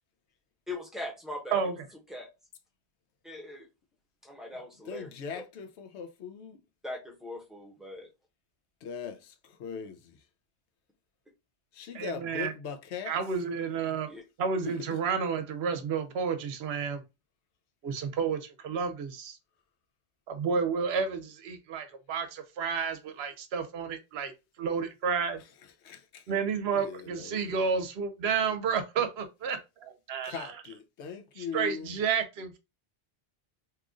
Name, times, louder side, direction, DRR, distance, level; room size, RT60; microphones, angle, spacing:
voice 1, 0.7-1.6 2.1-2.3 3.2-3.7 4.2-5.1 6.8-8.1 14.1-14.2, left 2 dB, ahead, 0.9 m, -40 dB
voice 2, 1.5-1.9 11.9-12.5 13.1-14.1 14.4-17.0 17.8-19.4 20.3-24.3 24.6-25.4 26.3-30.5 31.4-32.6, right 6 dB, 75° right, 0.8 m, -31 dB
voice 3, 4.9-6.6 8.8-10.2 11.8-13.1 14.6-15.0 25.8-26.3 26.7-27.6 30.2-32.0, left 6 dB, 85° left, 0.9 m, -40 dB
2.9 x 2.4 x 3.6 m
omnidirectional pair, 1.1 m